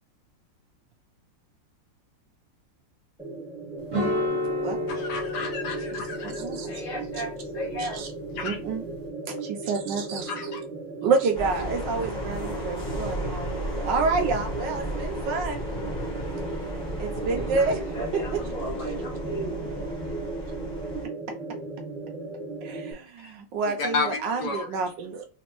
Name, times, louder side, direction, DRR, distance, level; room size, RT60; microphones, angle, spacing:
sound 1, 3.2-22.9, right 3 dB, 5° right, 0.4 m, -36 dB
sound 2, 3.9-9.1, left 1 dB, 55° right, 1.8 m, -32 dB
voice 1, 4.9-6.4 8.4-8.6 10.4-10.6 23.8-24.7, left 4 dB, 70° left, 3 dB, 1.2 m, -31 dB
voice 2, 5.9-6.8 7.8-8.1 8.4-8.8 9.3-10.5 11.0-15.6 17.0-17.8 18.3-18.4 22.6-25.3, right 4 dB, 75° right, 4 dB, 1.3 m, -29 dB
voice 3, 6.6-8.0 17.3-19.6, equal, 50° left, 0 dB, 1.3 m, -35 dB
sound 3, 11.3-21.1, equal, 30° left, 1.3 m, -35 dB
4.0 x 2.6 x 3.0 m, 0.36 s
omnidirectional pair, 2.0 m